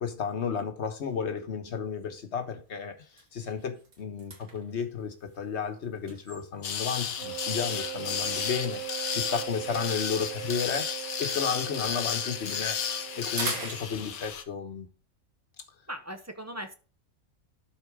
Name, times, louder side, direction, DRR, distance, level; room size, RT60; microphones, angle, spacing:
voice 1, 0.0-10.9 11.2-12.8 13.2-14.9, left 6 dB, 50° left, 1.5 m, -33 dB
sound 1, 1.9-2.1 2.6-2.7 3.0-7.0 7.8-11.4 11.7-14.5, right 3 dB, 85° right, 2.2 m, -43 dB
sound 2, 6.6-14.4, left 7 dB, 80° left, 1.3 m, -33 dB
Wind instrument woodwind instrument, 7.2-13.8, right 19 dB, 60° right, 0.8 m, -40 dB
voice 2, 15.9-16.7, equal, 15° right, 0.6 m, -39 dB
12.0 x 4.3 x 4.9 m
omnidirectional pair, 1.5 m